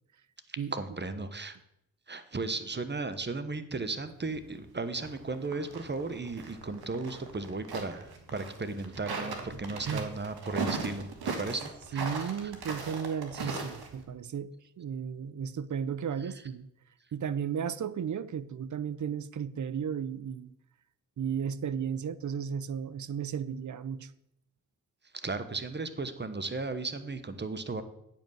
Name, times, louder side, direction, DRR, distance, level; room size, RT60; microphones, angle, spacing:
voice 1, 0.5-1.6 2.1-12.3 13.4-13.5 25.1-27.8, right 3 dB, 25° right, 11 dB, 1.1 m, -36 dB
sound 1, 4.2-14.0, right 4 dB, 70° right, 1.6 m, -39 dB
voice 2, 9.2-9.6 9.9-10.0 11.9-16.7 17.1-20.5 21.2-24.1, right 7 dB, 50° right, 16 dB, 0.6 m, -34 dB
8.9 x 5.3 x 6.5 m, 0.82 s
supercardioid pair, 40°, 39 cm